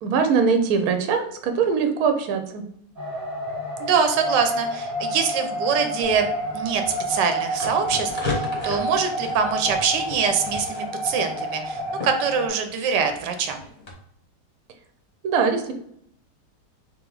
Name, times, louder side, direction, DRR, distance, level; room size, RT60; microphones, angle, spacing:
voice 1, 0.0-2.6 15.2-15.7, right 5 dB, 70° right, 6 dB, 1.0 m, -22 dB
sound 1, 3.0-12.5, equal, 10° left, 1.0 m, -30 dB
voice 2, 3.8-6.3 6.5-6.8 7.1-13.6, right 6 dB, 85° right, 6 dB, 1.3 m, -24 dB
sound 2, 6.0-13.9, left 3 dB, 30° left, 0.8 m, -36 dB
3.4 x 3.0 x 3.8 m, 0.69 s
omnidirectional pair, 1.8 m